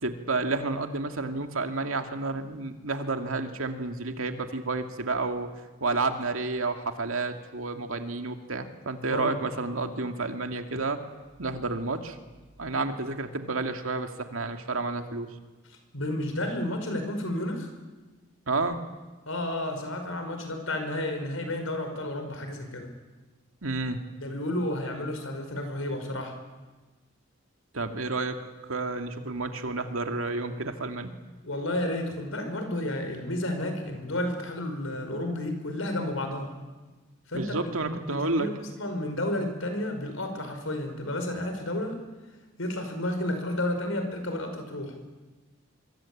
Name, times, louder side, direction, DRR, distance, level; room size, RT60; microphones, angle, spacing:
voice 1, 0.0-5.5 5.8-11.0 11.4-12.2 12.6-15.3 18.5-18.8 23.6-24.0 27.7-31.1 37.3-38.5, right 3 dB, 80° right, 6 dB, 2.2 m, -30 dB
voice 2, 15.9-17.7 19.3-22.9 24.2-26.4 31.4-36.5 37.3-42.0 42.6-45.0, left 1 dB, 75° left, 6 dB, 5.2 m, -31 dB
24.5 x 23.5 x 8.7 m, 1.2 s
head